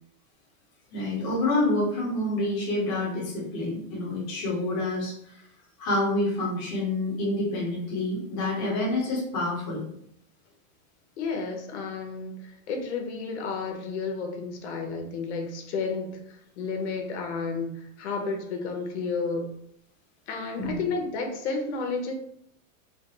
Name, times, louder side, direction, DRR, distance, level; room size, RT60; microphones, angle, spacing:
voice 1, 0.9-5.4 5.8-9.8 20.6-20.8, left 2 dB, 20° left, -6 dB, 0.4 m, -28 dB
voice 2, 11.2-19.5 20.3-22.1, left 4 dB, 55° left, 3 dB, 0.7 m, -32 dB
3.3 x 2.3 x 2.7 m, 0.71 s
supercardioid pair, 175°, 41 cm